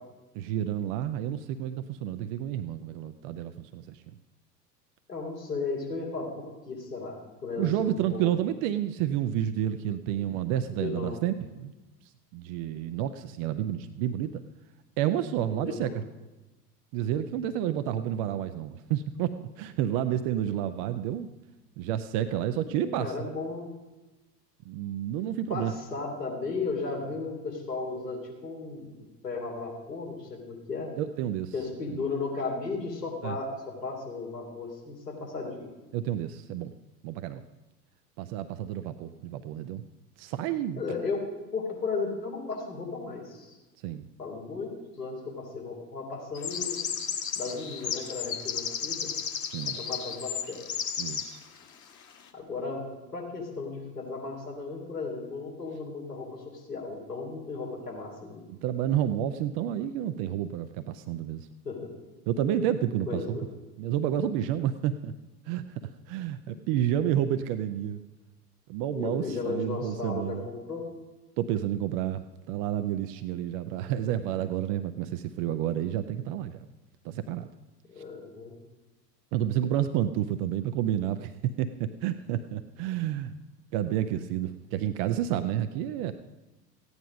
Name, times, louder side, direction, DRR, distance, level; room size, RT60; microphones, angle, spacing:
voice 1, 0.3-4.0 7.6-11.7 12.3-14.4 15.0-16.0 16.9-21.3 21.8-23.3 24.7-25.7 31.0-31.5 31.9-32.0 33.2-33.4 35.9-36.7 37.0-37.4 38.2-39.8 40.2-41.0 43.8-44.1 49.4-49.8 51.0-51.4 58.5-61.5 62.3-63.4 63.8-65.1 65.5-68.0 68.7-70.4 71.4-72.2 72.5-76.6 77.0-77.5 79.3-83.3 83.7-86.1, right 11 dB, 25° right, 9 dB, 0.3 m, -30 dB
voice 2, 5.1-8.3 10.7-11.2 15.5-15.9 22.6-23.7 25.5-28.9 29.2-30.9 31.5-35.7 39.0-39.1 40.8-41.2 41.5-43.6 44.2-46.8 47.3-49.1 49.7-50.6 52.3-52.8 53.1-58.4 61.6-61.9 63.1-63.5 68.9-70.8 77.9-78.5, left 4 dB, 80° left, -2 dB, 3.4 m, -35 dB
sound 1, 46.3-51.3, left 7 dB, 35° left, 1.5 m, -33 dB
15.0 x 9.5 x 5.1 m, 1.1 s
figure-of-eight pair, 80°, 48 cm